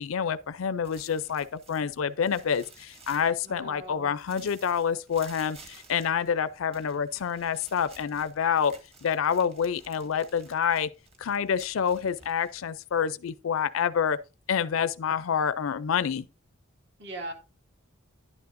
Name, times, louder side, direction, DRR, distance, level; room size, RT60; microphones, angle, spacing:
voice 1, 0.0-8.7 9.0-10.9 11.2-14.2 14.5-16.3, left 7 dB, 75° left, 0.4 m, -27 dB
sound 1, 0.8-3.8 4.1-13.1, right 3 dB, 30° right, 1.6 m, -54 dB
voice 2, 3.4-4.1 17.0-17.3, right 1 dB, 55° right, 2.0 m, -39 dB
11.0 x 9.5 x 2.5 m
head